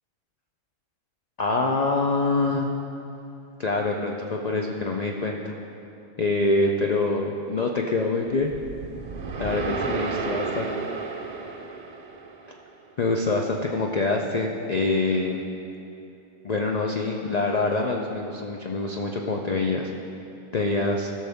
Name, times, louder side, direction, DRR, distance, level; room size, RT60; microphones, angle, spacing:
voice 1, 1.4-2.7 3.6-5.5 6.2-8.5 9.4-10.8 13.0-15.4 16.4-19.9 20.5-21.1, left 3 dB, 90° left, 1 dB, 0.3 m, -25 dB
sound 1, 8.4-12.7, right 4 dB, 50° right, 0.5 m, -32 dB
16.0 x 6.3 x 3.5 m, 2.8 s
omnidirectional pair, 1.5 m